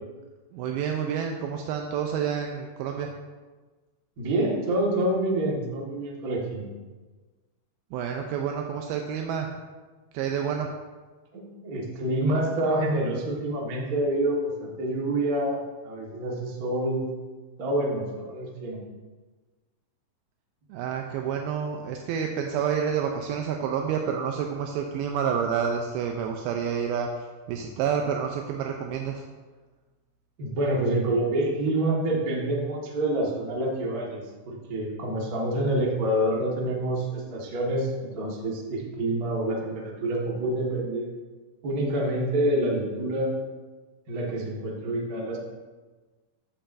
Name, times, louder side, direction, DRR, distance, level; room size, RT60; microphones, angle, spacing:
voice 1, 0.5-3.1 7.9-9.6 10.1-10.7 20.7-29.3, right 7 dB, 85° right, 2 dB, 2.4 m, -29 dB
voice 2, 4.2-6.7 11.3-17.0 17.6-18.8 30.4-41.1 41.6-43.3 44.1-45.4, right 1 dB, 65° right, -3 dB, 0.8 m, -27 dB
14.0 x 6.8 x 2.6 m, 1.3 s
omnidirectional pair, 4.4 m